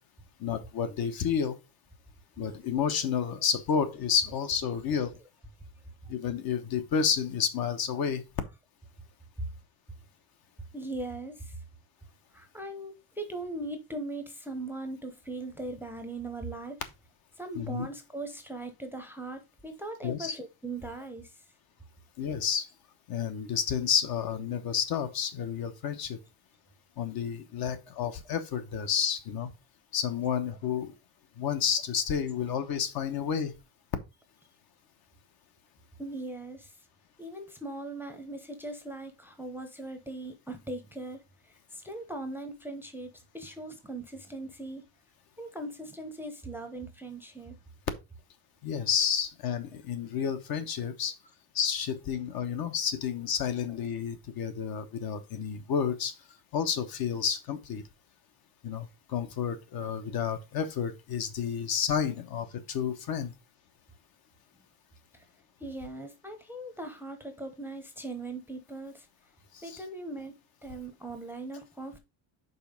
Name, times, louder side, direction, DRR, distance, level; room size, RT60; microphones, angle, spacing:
voice 1, 0.4-1.6 2.4-5.1 6.1-8.3 17.6-17.9 20.0-20.4 22.2-22.7 23.1-26.2 27.0-29.5 29.9-30.9 31.4-33.5 48.6-51.1 51.5-56.1 56.5-57.8 58.6-63.3 69.5-69.8, left 7 dB, 50° left, 1.0 m, -30 dB
voice 2, 10.7-11.6 12.3-16.8 17.4-21.4 36.0-36.8 37.2-44.8 45.4-47.6 65.1-65.2 65.6-69.1 69.6-70.4 70.6-72.0, right 2 dB, 5° right, 0.7 m, -40 dB
5.5 x 4.2 x 5.1 m
cardioid pair, 155°, 47 cm